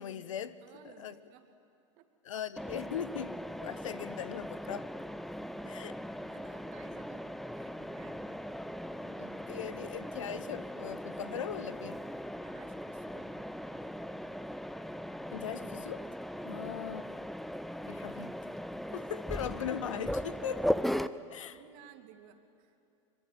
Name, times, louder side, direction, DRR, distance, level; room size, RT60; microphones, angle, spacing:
voice 1, 0.0-0.6 0.8-1.2 2.2-4.9 5.6-6.0 9.0-12.0 15.3-16.1 16.4-17.0 17.9-18.6 18.9-20.7 21.3-21.6, left 9 dB, 80° left, 15 dB, 1.0 m, -40 dB
voice 2, 0.6-1.5 2.0-2.1 6.3-8.5 12.4-13.4 16.4-16.6 21.1-21.2 21.5-22.7, right 9 dB, 60° right, 7 dB, 2.3 m, -57 dB
Mechanisms, 2.6-21.1, equal, ahead, 0.8 m, -39 dB
25.5 x 22.5 x 9.4 m, 2.7 s
hypercardioid pair, 90°, 16 cm